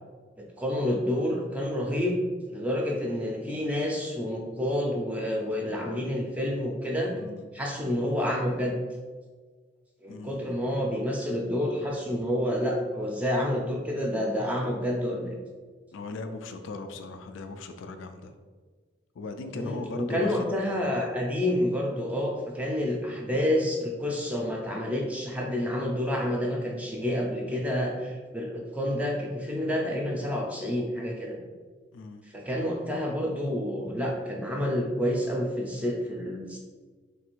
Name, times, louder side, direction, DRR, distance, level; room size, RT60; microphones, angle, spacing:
voice 1, 0.4-2.2 2.5-7.1 7.5-8.7 10.0-15.3 19.5-31.4 32.3-36.6, left 1 dB, 5° right, -1 dB, 0.4 m, -29 dB
voice 2, 7.1-7.4 10.1-10.4 15.9-18.3 19.2-20.8 31.9-32.2, left 3 dB, 75° left, 7 dB, 0.3 m, -39 dB
3.2 x 2.5 x 4.4 m, 1.4 s
head